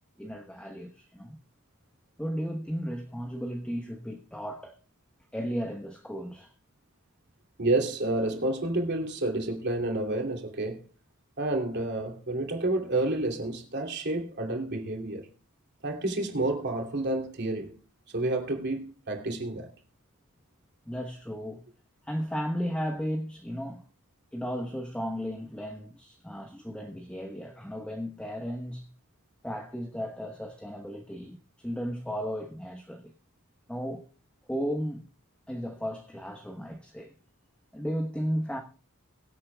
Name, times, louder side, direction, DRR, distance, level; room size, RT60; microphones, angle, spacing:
voice 1, 0.2-1.4 2.2-4.8 5.3-6.5 20.9-21.6 22.0-23.8 24.3-28.9 29.4-33.1 33.7-34.1 34.5-35.1 35.5-37.1 37.7-38.6, equal, 5° left, 1.1 m, -34 dB
voice 2, 7.6-10.8 11.4-15.3 15.8-17.8 18.1-19.7, right 2 dB, 50° right, 2.9 m, -29 dB
23.0 x 8.5 x 2.3 m
head